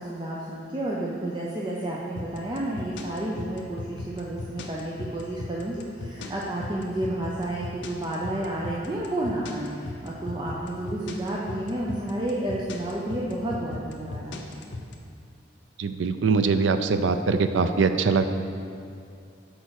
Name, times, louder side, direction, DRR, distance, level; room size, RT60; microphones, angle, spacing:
voice 1, 0.0-14.6, right 1 dB, 25° right, -5 dB, 0.6 m, -31 dB
sound 1, 2.2-14.9, left 2 dB, 70° left, 0.7 m, -36 dB
voice 2, 15.8-18.2, right 4 dB, 75° right, 9 dB, 0.4 m, -22 dB
6.4 x 4.6 x 6.3 m, 2.5 s
head